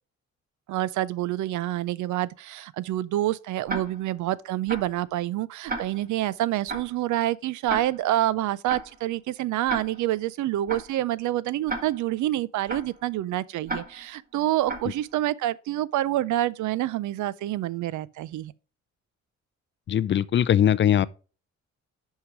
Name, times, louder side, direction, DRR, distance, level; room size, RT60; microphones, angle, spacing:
voice 1, 0.7-18.5, right 14 dB, 75° right, 0.5 m, -27 dB
Tick-tock, 3.7-4.2 4.7-5.0 5.7-6.2 6.7-7.0 7.7-8.2 8.7-9.0 9.7-10.2 10.7-11.0 11.7-12.2 12.7-13.0 13.7-14.2 14.7-15.0, right 2 dB, 30° right, 1.6 m, -34 dB
voice 2, 19.9-21.1, left 10 dB, 40° left, 0.4 m, -20 dB
5.8 x 5.7 x 4.7 m
cardioid pair, 90°, 30 cm